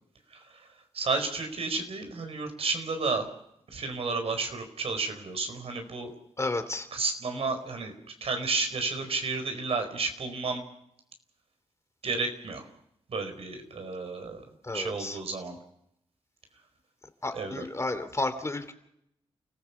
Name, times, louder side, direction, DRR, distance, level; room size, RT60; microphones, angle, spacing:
voice 1, 0.3-0.7 0.9-3.3 3.7-6.1 6.9-7.9 8.2-10.6 12.0-12.7 13.1-14.4 14.7-15.6 17.3-17.6, right 4 dB, 70° right, 6 dB, 4.6 m, -32 dB
voice 2, 6.4-6.9 14.6-15.2 17.2-18.7, left 2 dB, 25° left, 9 dB, 2.8 m, -32 dB
29.5 x 15.0 x 7.2 m, 0.78 s
cardioid pair, 60°, 11 cm